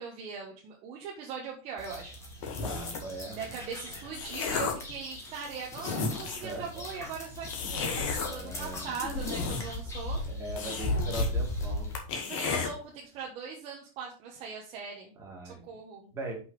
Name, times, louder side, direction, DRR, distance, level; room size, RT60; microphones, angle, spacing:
voice 1, 0.0-2.1 2.5-2.6 3.3-10.2 12.1-15.1 15.4-16.1, right 6 dB, 35° right, -1 dB, 1.2 m, -40 dB
sound 1, 1.8-12.0, left 1 dB, 15° left, 1.5 m, -36 dB
sound 2, 2.4-3.1 3.8-4.9 5.5-5.6 5.8-6.5 7.5-8.3 9.0-9.9 10.2-10.3 10.6-11.3 11.6-11.7 11.9-12.7, left 5 dB, 60° left, 2.0 m, -33 dB
voice 2, 2.6-3.6 6.4-6.9 8.2-8.9 10.3-11.9 15.2-15.6 16.1-16.3, right 2 dB, 15° right, -2 dB, 2.2 m, -40 dB
5.9 x 5.7 x 4.8 m, 0.38 s
supercardioid pair, 175°, 18 cm